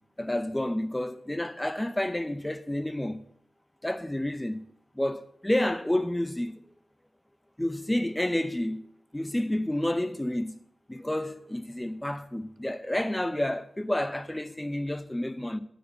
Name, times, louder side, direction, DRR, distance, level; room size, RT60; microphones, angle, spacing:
voice 1, 0.2-3.2 3.8-4.6 5.0-6.5 7.6-8.8 9.1-10.6 10.9-15.6, left 1 dB, 15° left, 0.7 m, -29 dB
8.9 x 5.1 x 7.9 m
cardioid pair, 45°, 0 cm